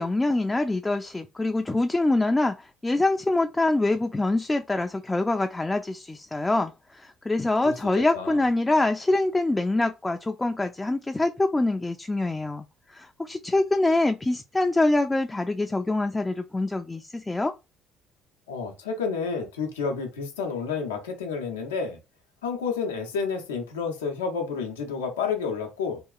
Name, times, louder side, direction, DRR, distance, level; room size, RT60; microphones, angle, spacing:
voice 1, 0.0-12.6 12.9-17.5, left 2 dB, 15° left, 0.3 m, -25 dB
voice 2, 18.5-22.0 22.4-26.0, left 5 dB, 85° left, 0.5 m, -30 dB
2.8 x 2.3 x 2.3 m
hypercardioid pair, 50°, 0 cm